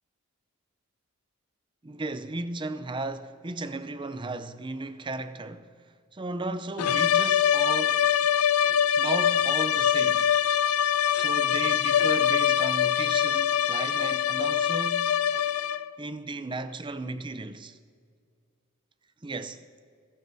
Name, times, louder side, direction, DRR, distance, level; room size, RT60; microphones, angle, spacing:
voice 1, 1.8-8.1 9.0-10.3 11.1-15.2 16.0-17.8 19.2-19.6, right 2 dB, 20° right, 0.5 m, -35 dB
sound 1, 6.8-16.0, left 9 dB, 90° left, 0.4 m, -24 dB
30.0 x 15.5 x 2.7 m
head